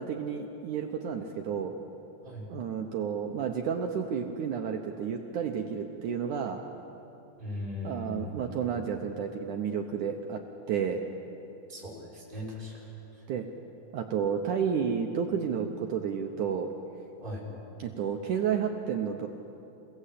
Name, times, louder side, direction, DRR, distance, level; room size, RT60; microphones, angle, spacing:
voice 1, 0.0-1.7 2.5-6.6 7.8-10.4 10.7-11.0 13.3-13.5 13.9-16.7 17.8-19.3, right 7 dB, 70° right, 4 dB, 1.9 m, -31 dB
voice 2, 7.4-8.6 11.7-13.2 17.2-17.5, left 1 dB, 10° right, -6 dB, 5.9 m, -39 dB
29.0 x 17.0 x 8.4 m, 2.9 s
omnidirectional pair, 4.7 m